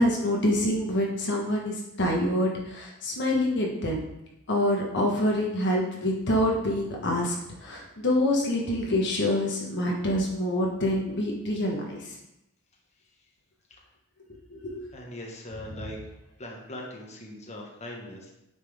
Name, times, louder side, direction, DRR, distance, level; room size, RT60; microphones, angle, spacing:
voice 1, 0.0-4.0 4.5-12.1 14.5-14.8, left 1 dB, 55° left, -1 dB, 1.4 m, -26 dB
voice 2, 14.9-16.0 16.4-18.3, left 1 dB, 30° left, -2 dB, 1.5 m, -40 dB
9.4 x 6.0 x 3.6 m, 0.88 s
head